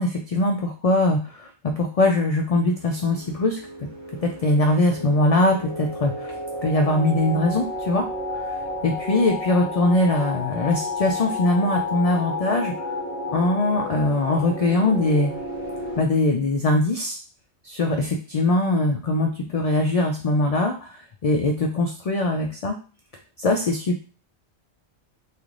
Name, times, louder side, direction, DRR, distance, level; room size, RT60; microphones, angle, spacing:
voice 1, 0.0-3.6 4.2-6.4 6.6-8.1 8.3-8.5 8.8-12.7 13.3-15.3 16.0-17.2 17.6-22.8 23.4-24.0, left 2 dB, 65° left, 3 dB, 0.3 m, -22 dB
sound 1, 2.6-16.0, left 2 dB, 40° left, 1.0 m, -32 dB
3.1 x 2.4 x 3.7 m, 0.37 s
omnidirectional pair, 1.1 m